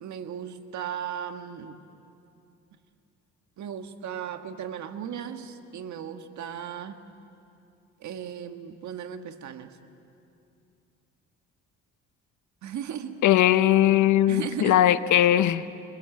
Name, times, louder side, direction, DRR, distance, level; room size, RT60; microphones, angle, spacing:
voice 1, 0.0-1.8 3.6-7.0 8.0-9.8 12.6-13.2 14.3-14.8, right 9 dB, 70° right, 7 dB, 1.6 m, -36 dB
voice 2, 13.2-15.7, left 12 dB, 75° left, 14 dB, 0.9 m, -20 dB
29.5 x 21.5 x 7.7 m, 2.7 s
cardioid pair, 90°, 30 cm